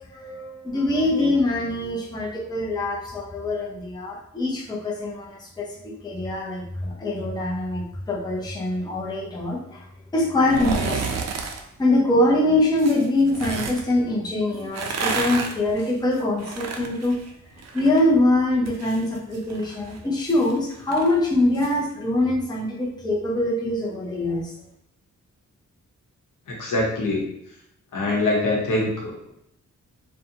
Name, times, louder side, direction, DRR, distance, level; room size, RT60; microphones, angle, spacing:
voice 1, 0.0-9.8 10.1-11.2 11.8-17.2 17.7-24.5, left 1 dB, 15° left, -3 dB, 0.6 m, -23 dB
leather around handle, 10.4-11.6 12.8-13.8 14.6-18.0 18.3-21.8 22.1-22.2, right 5 dB, 60° right, 0.4 m, -31 dB
voice 2, 26.5-27.2 27.9-29.3, left 2 dB, 85° left, -2 dB, 0.9 m, -24 dB
2.6 x 2.2 x 2.7 m, 0.75 s
wide cardioid pair, 125°, 31 cm